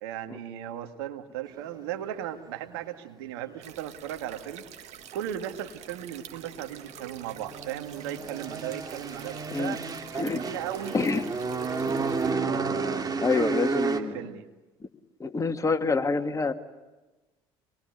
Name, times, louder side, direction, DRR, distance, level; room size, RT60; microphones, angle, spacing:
voice 1, 0.0-4.6 5.1-9.8 10.2-11.1 12.5-13.2 13.7-14.5, right 11 dB, 80° right, 7 dB, 2.0 m, -36 dB
sound 1, 3.6-12.3, right 10 dB, 60° right, 1.9 m, -47 dB
sound 2, 6.4-14.0, right 4 dB, 30° right, 2.7 m, -31 dB
voice 2, 13.2-14.3 14.8-14.9 15.2-16.5, left 4 dB, 25° left, 6 dB, 2.2 m, -27 dB
26.5 x 21.5 x 9.4 m, 1.1 s
hypercardioid pair, 65°, 13 cm